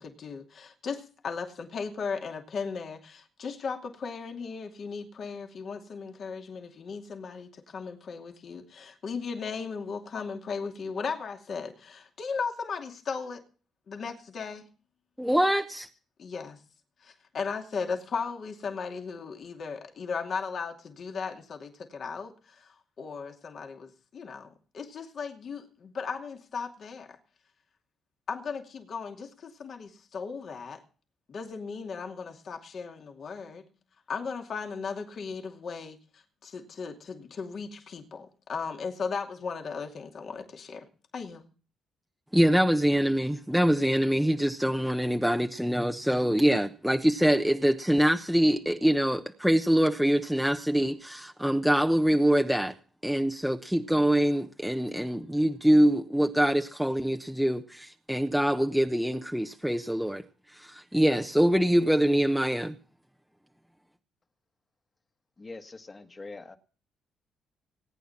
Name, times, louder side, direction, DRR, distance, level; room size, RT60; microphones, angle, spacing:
voice 1, 0.0-13.4 13.9-14.6 16.2-16.6 17.0-27.2 28.3-30.8 31.3-33.6 34.1-40.9 41.1-41.5, left 5 dB, 55° left, 4 dB, 2.5 m, -36 dB
voice 2, 15.2-15.9 42.3-52.8 53.0-60.2 60.5-62.8, equal, ahead, 4 dB, 1.0 m, -24 dB
voice 3, 65.4-66.6, left 3 dB, 30° left, 8 dB, 1.8 m, -43 dB
19.0 x 9.3 x 5.8 m, 0.39 s
cardioid pair, 90°, 0 cm